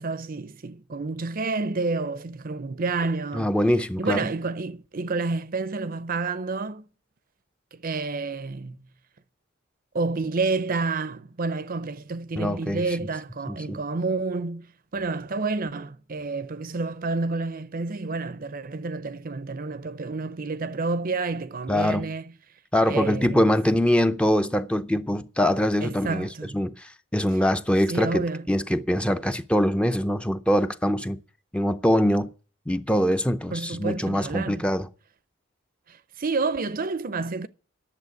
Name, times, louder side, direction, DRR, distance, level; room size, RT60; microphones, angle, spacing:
voice 1, 0.0-3.5 4.0-6.9 7.7-8.8 9.9-14.7 14.9-22.3 22.8-23.4 25.8-26.6 27.9-28.5 33.5-34.6 35.9-37.5, right 3 dB, 45° right, 0.6 m, -29 dB
voice 2, 3.3-4.2 12.4-12.8 13.5-13.8 21.7-22.1 22.7-31.2 31.5-32.3 32.7-34.9, equal, 5° left, 0.5 m, -23 dB
10.5 x 7.1 x 9.4 m
head